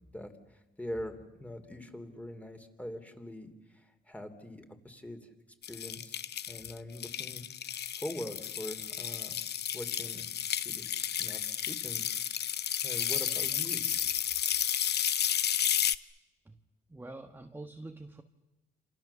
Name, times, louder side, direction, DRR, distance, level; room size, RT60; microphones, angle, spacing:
voice 1, 0.1-5.3 5.7-7.4 7.7-9.4 9.7-10.3 10.6-12.0 12.8-13.9, left 1 dB, 5° left, 7 dB, 3.3 m, -43 dB
sound 1, 5.6-16.0, left 9 dB, 55° left, 0.8 m, -32 dB
voice 2, 16.9-18.2, right 2 dB, 10° right, 5 dB, 1.4 m, -45 dB
28.0 x 27.0 x 7.1 m, 1.0 s
cardioid pair, 90°, 20 cm